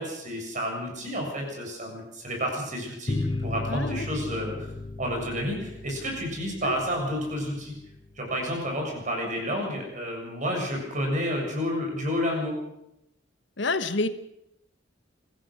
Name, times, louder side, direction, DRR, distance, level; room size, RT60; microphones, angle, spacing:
voice 1, 0.0-3.2 3.4-4.7 5.0-7.8 8.2-12.6, equal, 45° right, 1 dB, 7.4 m, -30 dB
sound 1, 3.1-8.2, left 2 dB, 25° left, 0.9 m, -35 dB
voice 2, 3.7-4.1 6.6-6.8 13.6-14.1, left 3 dB, 75° left, 11 dB, 1.3 m, -28 dB
25.5 x 15.5 x 6.5 m, 0.84 s
head